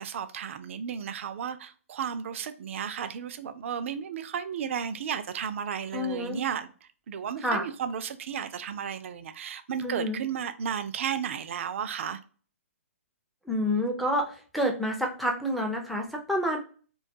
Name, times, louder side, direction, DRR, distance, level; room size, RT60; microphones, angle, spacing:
voice 1, 0.0-6.7 7.1-12.2, right 8 dB, 55° right, 0.4 m, -33 dB
voice 2, 5.9-6.4 7.4-7.6 9.8-10.2 13.5-16.6, equal, ahead, 0.4 m, -28 dB
2.5 x 2.3 x 2.6 m
hypercardioid pair, 140°, 8 cm